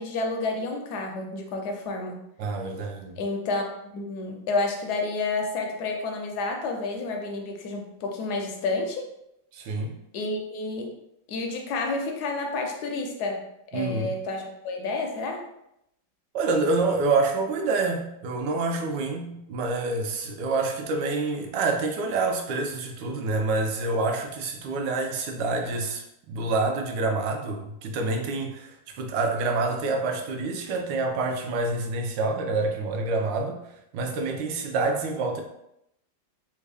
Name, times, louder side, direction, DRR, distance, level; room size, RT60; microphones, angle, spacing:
voice 1, 0.0-2.2 3.2-9.0 10.1-10.9 11.3-13.4 13.7-15.5, left 3 dB, 75° left, 3 dB, 1.0 m, -30 dB
voice 2, 2.4-3.2 9.5-9.9 13.7-14.1 16.3-33.6 33.9-35.4, right 3 dB, 75° right, 3 dB, 1.2 m, -27 dB
3.5 x 2.3 x 3.3 m, 0.81 s
omnidirectional pair, 2.1 m